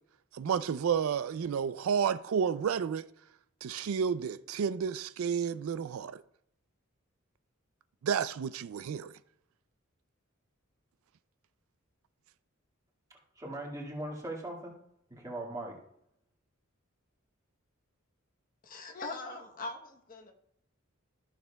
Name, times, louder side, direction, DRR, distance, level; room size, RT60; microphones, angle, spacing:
voice 1, 0.3-3.0 3.6-6.2 8.0-9.1, right 7 dB, 80° right, 0.4 m, -31 dB
voice 2, 13.4-14.7 15.1-15.8, right 1 dB, 15° right, 1.9 m, -39 dB
voice 3, 18.6-20.3, left 2 dB, 40° left, 1.0 m, -41 dB
13.5 x 6.5 x 2.3 m
head